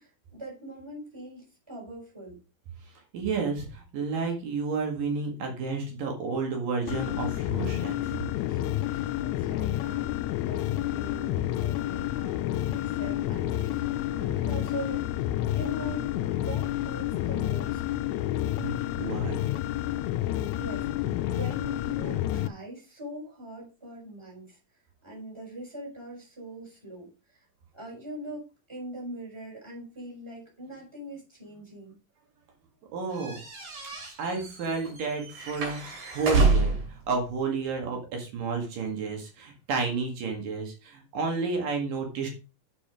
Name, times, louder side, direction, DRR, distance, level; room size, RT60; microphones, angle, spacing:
voice 1, 0.0-2.4 8.5-15.3 15.5-17.8 20.5-24.6 25.0-27.5 27.7-32.0 35.4-35.6, right 1 dB, 10° right, -3 dB, 4.6 m, -42 dB
voice 2, 3.1-8.2 18.6-19.4 32.9-33.4 34.2-42.3, right 4 dB, 85° right, 2 dB, 3.7 m, -31 dB
sound 1, 6.9-22.5, left 13 dB, 85° left, 1.6 m, -29 dB
sound 2, 33.2-36.9, right 3 dB, 70° right, 4.0 m, -27 dB
7.2 x 7.2 x 4.9 m, 0.32 s
omnidirectional pair, 3.8 m